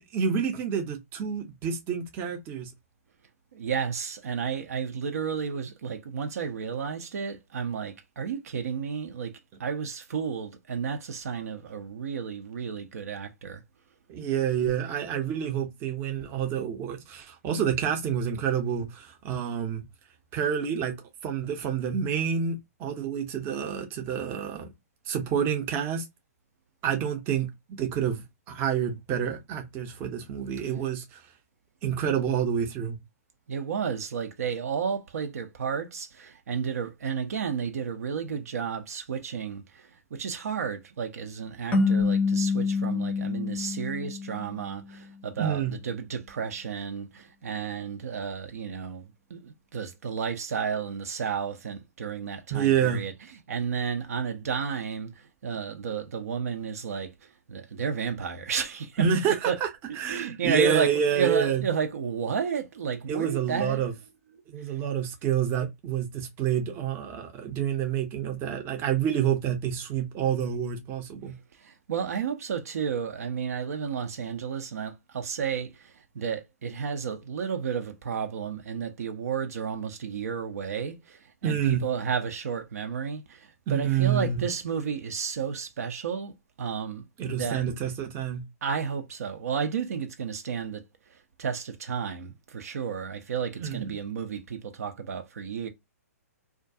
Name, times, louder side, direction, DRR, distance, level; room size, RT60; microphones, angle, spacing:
voice 1, 0.0-2.7 14.1-19.8 20.3-21.0 21.2-24.7 25.1-26.1 26.8-27.5 27.8-31.2 31.8-33.0 45.4-45.8 52.5-53.0 59.0-59.7 60.0-61.6 63.1-63.9 64.5-71.3 81.4-81.9 83.7-84.5 87.2-88.4 93.6-94.0, right 8 dB, 25° right, 0.6 m, -28 dB
voice 2, 3.5-13.6 33.5-53.1 53.5-59.0 59.5-59.6 59.9-63.9 64.7-64.8 71.5-87.6 88.6-90.8 91.1-95.7, right 7 dB, 70° right, 0.5 m, -32 dB
sound 1, 41.7-44.9, left 4 dB, 15° left, 0.5 m, -27 dB
2.3 x 2.2 x 2.6 m
hypercardioid pair, 130°, 9 cm